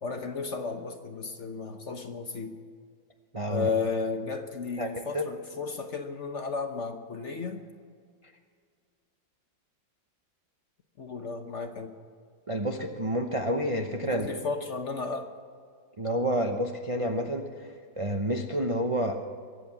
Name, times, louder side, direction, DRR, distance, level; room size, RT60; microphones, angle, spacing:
voice 1, 0.0-2.6 3.5-7.6 11.0-11.9 14.0-15.3, left 4 dB, 50° left, 6 dB, 1.0 m, -33 dB
voice 2, 3.3-3.7 4.8-5.3 12.5-14.3 16.0-19.2, equal, 35° right, 3 dB, 0.5 m, -29 dB
22.5 x 8.4 x 7.2 m, 2.1 s
omnidirectional pair, 2.0 m